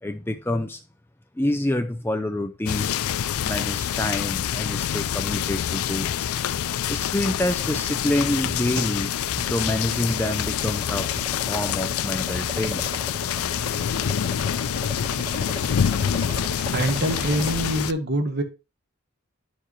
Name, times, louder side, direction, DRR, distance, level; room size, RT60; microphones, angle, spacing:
voice 1, 0.0-0.8 1.4-3.0 3.4-6.3 6.9-9.1 9.4-11.1 11.5-12.9, left 1 dB, 10° left, 0.5 m, -27 dB
sound 1, 2.7-17.9, left 9 dB, 90° left, 0.4 m, -26 dB
sound 2, 7.2-12.3, right 1 dB, 75° right, 2.1 m, -39 dB
sound 3, 9.0-17.5, equal, 25° right, 1.2 m, -38 dB
voice 2, 16.7-18.4, right 1 dB, 50° right, 1.3 m, -25 dB
11.0 x 4.5 x 3.1 m
head